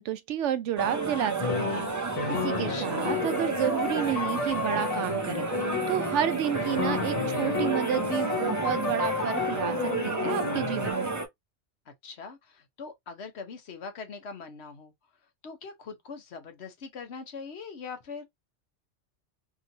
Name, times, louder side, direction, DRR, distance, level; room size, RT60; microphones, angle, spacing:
voice 1, 0.0-5.5 5.9-11.1, right 9 dB, 75° right, 0.9 m, -31 dB
sound 1, 0.8-11.3, right 3 dB, 20° right, 0.5 m, -32 dB
sound 2, 1.4-6.2 6.5-10.9, left 4 dB, 45° left, 0.5 m, -31 dB
voice 2, 2.4-3.4 11.9-14.9 15.4-18.2, left 5 dB, 65° left, 1.1 m, -42 dB
3.0 x 2.7 x 2.6 m
omnidirectional pair, 1.2 m